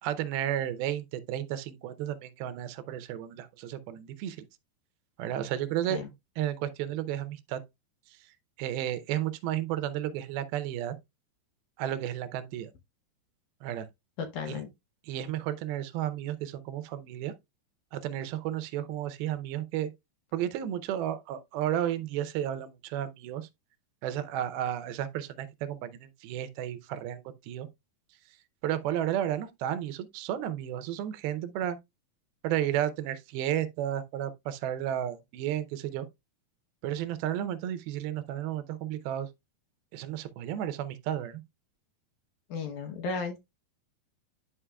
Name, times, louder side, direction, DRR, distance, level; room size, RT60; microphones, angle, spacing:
voice 1, 0.0-4.4 5.2-6.0 6.4-7.6 8.6-11.0 11.8-12.7 13.6-13.9 14.5-14.6 15.0-17.3 17.9-19.9 20.3-23.5 24.0-27.7 28.6-31.8 32.4-36.1 36.8-39.3 39.9-41.4, right 11 dB, 85° right, 2.6 m, -32 dB
voice 2, 14.2-14.7 42.5-43.4, left 5 dB, 70° left, 2.1 m, -34 dB
11.0 x 5.3 x 2.2 m
omnidirectional pair, 4.3 m